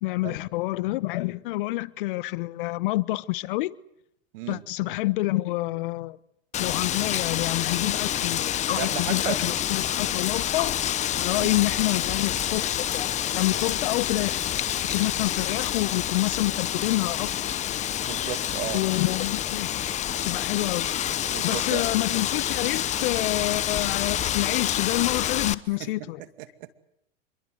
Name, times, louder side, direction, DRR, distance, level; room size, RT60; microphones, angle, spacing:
voice 1, 0.0-3.7 4.5-6.2 6.6-10.7 11.2-14.4 14.9-17.5 18.7-19.8 20.3-20.9 21.4-26.2, left 19 dB, 60° left, 1.1 m, -28 dB
voice 2, 4.3-4.9 8.8-9.5 11.4-11.5 18.1-18.8 21.3-21.8 25.8-26.1 26.4-26.7, right 15 dB, 60° right, 2.5 m, -35 dB
Wind, 6.5-25.5, left 11 dB, 25° left, 0.9 m, -28 dB
26.5 x 23.0 x 8.1 m
hypercardioid pair, 125°, 30 cm